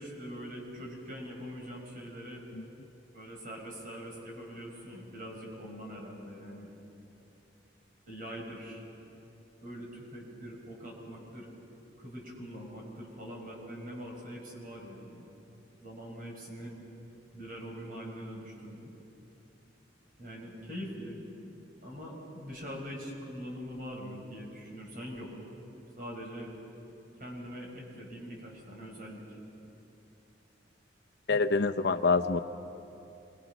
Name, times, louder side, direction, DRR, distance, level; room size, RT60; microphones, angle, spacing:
voice 1, 0.0-2.4 3.1-6.7 8.1-8.8 9.6-11.5 12.0-15.3 15.8-16.7 17.3-18.9 20.2-21.2 21.8-25.3 26.0-26.5 27.2-29.4, equal, 50° right, -1 dB, 5.5 m, -43 dB
voice 2, 31.3-32.4, left 4 dB, 60° left, 8 dB, 0.7 m, -26 dB
26.5 x 23.0 x 6.1 m, 2.8 s
head